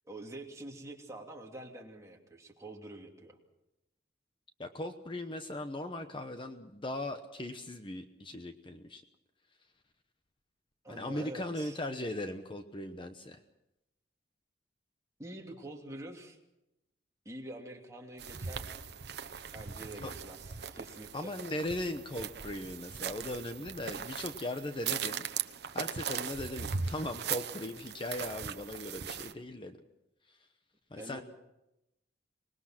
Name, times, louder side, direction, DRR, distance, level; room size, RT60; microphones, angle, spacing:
voice 1, 0.0-3.4 10.8-11.8 15.2-16.4 17.2-18.9 19.5-21.3 31.0-31.2, right 1 dB, 15° right, 0 dB, 2.8 m, -46 dB
voice 2, 4.6-9.0 10.9-13.4 20.0-20.1 21.1-25.2 25.7-29.8 30.9-31.2, left 1 dB, 30° left, 7 dB, 1.0 m, -38 dB
sound 1, 18.2-29.3, right 7 dB, 60° right, 1.0 m, -39 dB
25.5 x 20.5 x 6.0 m, 0.92 s
head